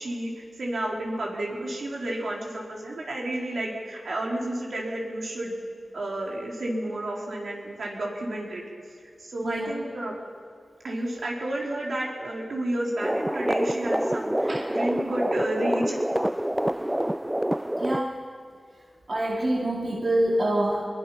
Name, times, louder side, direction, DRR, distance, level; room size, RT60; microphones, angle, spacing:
voice 1, 0.0-5.5 5.9-8.6 9.2-10.2 10.8-15.9, right 1 dB, 75° right, -2 dB, 4.2 m, -31 dB
voice 2, 9.4-9.8 14.5-14.6 17.8-18.2 19.1-20.9, right 1 dB, 50° right, -2 dB, 2.4 m, -26 dB
sound 1, 13.0-18.0, right 1 dB, 10° right, 0.4 m, -27 dB
23.0 x 21.5 x 5.8 m, 2.2 s
wide cardioid pair, 75°, 0 cm